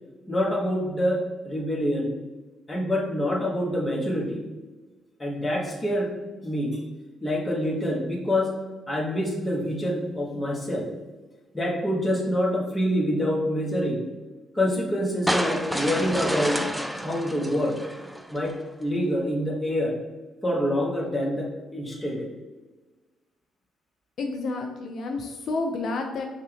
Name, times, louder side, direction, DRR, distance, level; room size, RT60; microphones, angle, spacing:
voice 1, 0.3-2.1 2.7-4.4 5.2-6.1 6.4-6.8 7.2-8.5 8.9-10.9 11.5-14.1 14.5-16.6 16.9-17.8 18.3-18.5 18.8-20.0 20.4-22.3, equal, 15° left, -2 dB, 1.2 m, -26 dB
sound 1, 15.3-18.5, equal, ahead, 0.3 m, -29 dB
voice 2, 24.2-26.2, left 3 dB, 65° left, 3 dB, 0.4 m, -30 dB
5.4 x 2.4 x 3.4 m, 1.2 s
cardioid pair, 90°, 0 cm